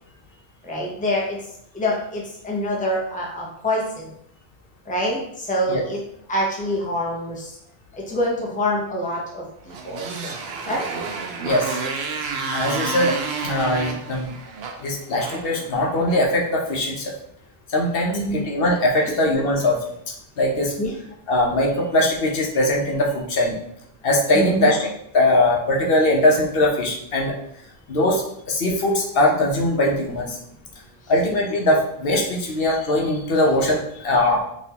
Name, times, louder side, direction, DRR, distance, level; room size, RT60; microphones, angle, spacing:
voice 1, 0.7-1.4 1.7-4.1 4.9-6.0 6.3-7.5 8.1-9.4 9.8-10.3 10.7-10.8 18.1-18.4 19.1-19.2 20.8-20.9 24.3-24.7, left 1 dB, 10° left, -3 dB, 0.7 m, -25 dB
Motorcycle, 9.7-16.2, right 4 dB, 80° right, 0.8 m, -30 dB
voice 2, 11.4-11.8 12.5-14.3 14.8-17.1 17.7-19.8 20.4-20.7 21.3-23.6 24.0-24.9 25.1-27.3 27.9-30.4 31.1-34.4, left 1 dB, 65° left, -2 dB, 0.9 m, -21 dB
4.1 x 3.0 x 2.8 m, 0.74 s
omnidirectional pair, 1.0 m